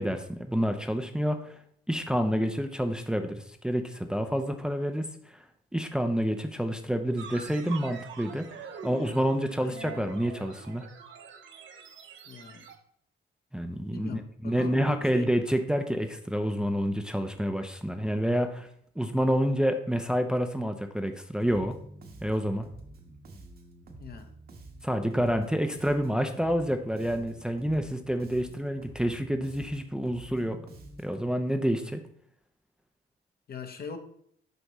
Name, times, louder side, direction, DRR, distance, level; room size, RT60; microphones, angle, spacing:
voice 1, 0.0-1.6 1.9-5.4 5.7-10.9 13.5-18.7 19.0-21.7 22.2-22.7 24.8-30.6 31.0-32.0, equal, 5° right, 6 dB, 0.6 m, -28 dB
sound 1, 7.2-12.8, right 6 dB, 70° right, 0.9 m, -45 dB
voice 2, 9.6-10.1 12.3-12.7 13.9-15.3 24.0-24.3 33.5-34.0, left 5 dB, 50° left, 6 dB, 1.0 m, -41 dB
Bass guitar, 21.4-31.3, right 1 dB, 50° right, 1.3 m, -48 dB
8.0 x 5.2 x 3.0 m, 0.68 s
cardioid pair, 90°, 20 cm